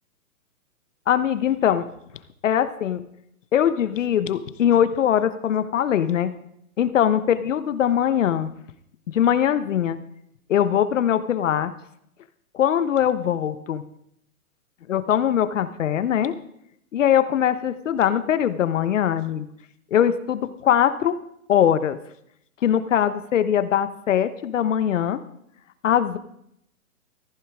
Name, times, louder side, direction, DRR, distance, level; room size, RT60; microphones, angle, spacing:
voice 1, 1.1-1.9 2.4-3.0 3.5-6.3 6.8-8.5 9.1-10.0 10.5-11.7 12.5-13.8 14.9-16.3 16.9-19.5 19.9-21.1 21.5-22.0 22.6-25.2 25.8-26.2, left 9 dB, 55° left, 12 dB, 1.2 m, -21 dB
15.0 x 14.5 x 3.7 m, 0.74 s
hypercardioid pair, 155°, 43 cm